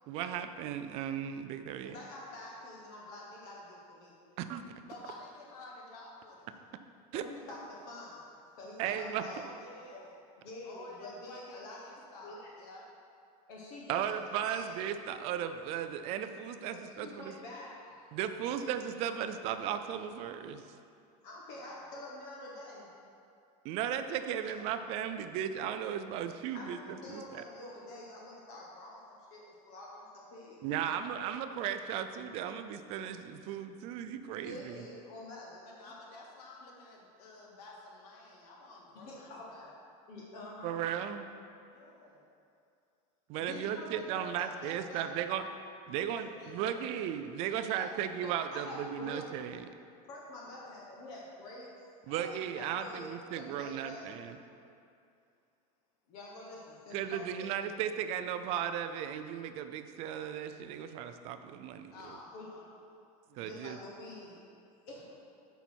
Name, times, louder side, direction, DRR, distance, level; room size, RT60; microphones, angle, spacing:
voice 1, 0.1-2.0 4.4-4.6 7.1-7.2 8.8-9.2 13.9-17.3 18.1-20.6 23.6-27.4 30.6-34.9 40.6-41.3 43.3-45.5 45.9-49.7 52.1-54.4 56.9-61.9 63.3-63.8, right 9 dB, 30° right, 9 dB, 0.3 m, -36 dB
voice 2, 1.8-4.4 7.1-8.2 8.6-9.5 9.9-10.0 10.4-11.8 12.2-12.5 13.5-14.2 14.4-14.7 16.7-18.0 18.5-18.7 21.2-22.9 26.5-30.6 30.8-31.1 34.3-35.6 38.9-39.7 40.1-40.8 43.4-45.1 48.2-49.3 50.1-51.7 52.1-54.2 56.1-57.5 62.3-62.5 63.4-64.4 64.9-65.0, left 1 dB, 45° left, -4 dB, 1.3 m, -47 dB
voice 3, 4.8-6.6 8.9-10.2 10.6-12.8 21.5-21.9 24.4-24.7 35.7-39.7 41.7-42.3 46.0-47.1 47.6-48.0 50.4-51.0 61.9-62.8, left 2 dB, 85° left, -2 dB, 1.9 m, -51 dB
9.2 x 5.7 x 4.5 m, 2.5 s
supercardioid pair, 175°, 20 cm